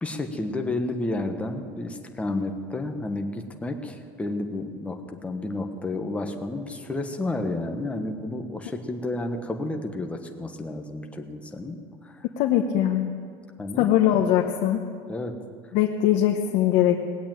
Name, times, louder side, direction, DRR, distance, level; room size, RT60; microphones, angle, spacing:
voice 1, 0.0-12.2 13.6-13.9 15.1-15.4, left 2 dB, 10° left, 4 dB, 1.3 m, -31 dB
voice 2, 12.2-13.1 13.8-14.8 15.7-17.0, left 11 dB, 70° left, 2 dB, 1.0 m, -21 dB
19.0 x 8.4 x 9.0 m, 2.1 s
cardioid pair, 140°, 12 cm